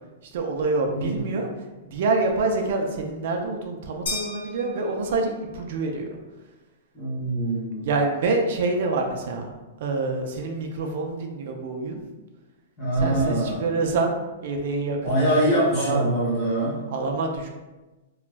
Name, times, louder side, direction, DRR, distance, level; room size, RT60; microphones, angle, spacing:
voice 1, 0.3-1.5 1.8-6.2 7.8-9.5 9.8-12.0 13.0-14.1 14.4-16.0 16.9-17.5, right 3 dB, 45° right, 2 dB, 0.4 m, -26 dB
voice 2, 0.9-1.3 6.9-7.9 12.8-13.6 15.0-16.8, right 1 dB, 5° left, -12 dB, 1.0 m, -24 dB
sound 1, 4.1-5.5, left 2 dB, 80° left, 1.1 m, -35 dB
2.5 x 2.3 x 3.1 m, 1.1 s
supercardioid pair, 180°, 0 cm